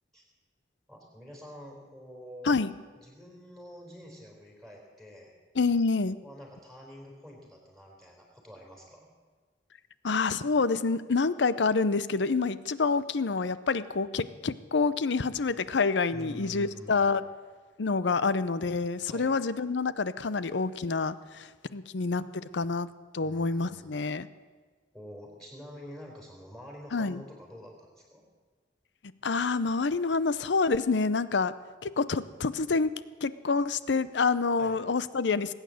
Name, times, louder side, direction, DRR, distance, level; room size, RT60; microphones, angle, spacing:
voice 1, 0.9-2.6 3.0-5.3 6.2-9.1 16.1-17.1 19.0-19.3 23.2-23.9 24.9-28.2 34.6-34.8, equal, ahead, 0 dB, 3.9 m, -47 dB
voice 2, 5.5-6.2 10.0-17.2 17.8-24.3 26.9-27.2 29.0-31.6 31.8-35.5, left 4 dB, 85° left, 16 dB, 0.6 m, -27 dB
20.0 x 9.1 x 7.7 m, 1.4 s
head